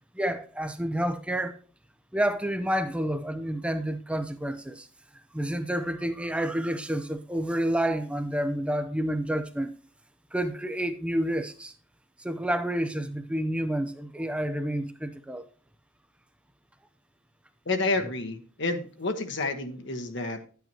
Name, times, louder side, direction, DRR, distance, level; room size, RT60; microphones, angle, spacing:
voice 1, 0.1-1.6 2.1-4.9 5.3-9.7 10.3-11.7 12.2-15.5, right 1 dB, 5° right, 0.5 m, -29 dB
voice 2, 17.6-20.4, left 3 dB, 60° left, 1.3 m, -29 dB
10.5 x 9.2 x 2.9 m
head